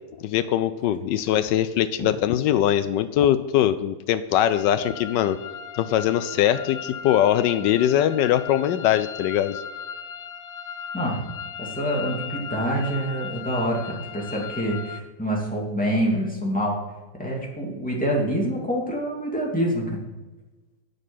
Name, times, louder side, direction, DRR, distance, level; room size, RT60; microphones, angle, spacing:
voice 1, 0.2-5.4 5.7-9.6, left 11 dB, 85° left, 12 dB, 1.2 m, -22 dB
sound 1, 4.4-15.0, left 7 dB, 55° left, 1.1 m, -37 dB
voice 2, 11.6-16.8 17.2-20.0, equal, 5° left, -3 dB, 2.6 m, -26 dB
10.5 x 6.7 x 9.1 m, 1.2 s
omnidirectional pair, 1.9 m